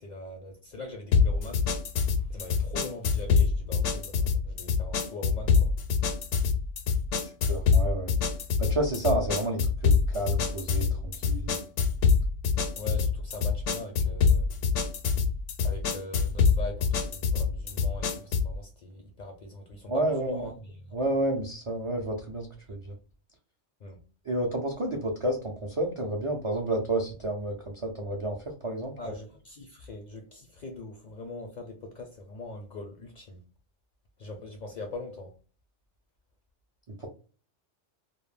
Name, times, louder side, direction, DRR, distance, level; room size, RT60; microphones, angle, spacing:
voice 1, 0.0-1.7 2.0-5.7 12.7-14.5 15.6-21.0 23.8-24.0 29.0-33.4 34.2-35.3, left 2 dB, 60° left, 0.5 m, -42 dB
sound 1, 1.1-18.6, left 5 dB, 80° left, 0.9 m, -25 dB
voice 2, 7.2-8.1 8.6-11.5 19.9-20.5 20.9-22.9 24.3-29.0 37.0-37.1, right 1 dB, 55° right, 0.3 m, -30 dB
2.3 x 2.0 x 3.1 m
omnidirectional pair, 1.2 m